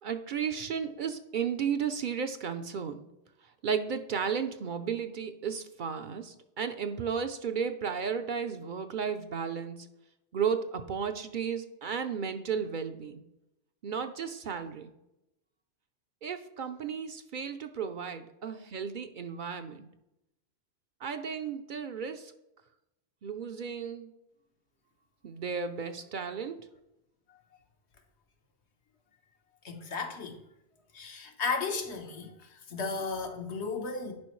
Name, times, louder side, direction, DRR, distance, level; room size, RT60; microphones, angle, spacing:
voice 1, 0.0-3.0 3.6-9.9 10.3-13.2 13.8-14.9 16.2-19.9 21.0-22.3 23.2-24.1 25.2-26.7, right 6 dB, 55° right, 8 dB, 0.6 m, -34 dB
voice 2, 29.6-30.4 30.9-34.1, left 4 dB, 80° left, 4 dB, 1.3 m, -34 dB
10.5 x 5.0 x 3.1 m, 0.88 s
omnidirectional pair, 1.1 m